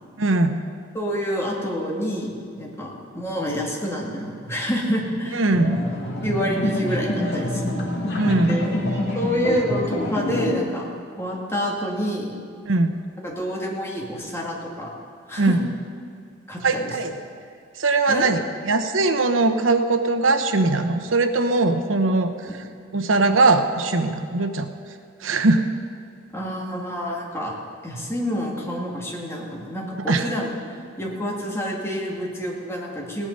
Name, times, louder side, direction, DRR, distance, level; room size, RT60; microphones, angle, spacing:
voice 1, 0.2-0.6 5.3-5.8 8.2-8.6 12.7-13.0 15.4-15.6 16.6-17.1 17.8-22.3 22.9-24.7 25.2-25.6 30.1-30.3, right 3 dB, 90° right, 7 dB, 0.9 m, -20 dB
voice 2, 0.9-5.4 6.2-7.9 8.5-8.7 9.1-10.9 11.2-12.3 13.2-14.9 15.3-15.7 16.5-16.9 18.1-18.3 22.5-22.6 26.3-27.5 27.8-30.6 31.0-33.3, equal, 15° left, -3 dB, 2.3 m, -28 dB
sound 1, 5.5-10.5, left 1 dB, 60° left, 2.5 m, -26 dB
17.0 x 9.9 x 5.4 m, 2.4 s
head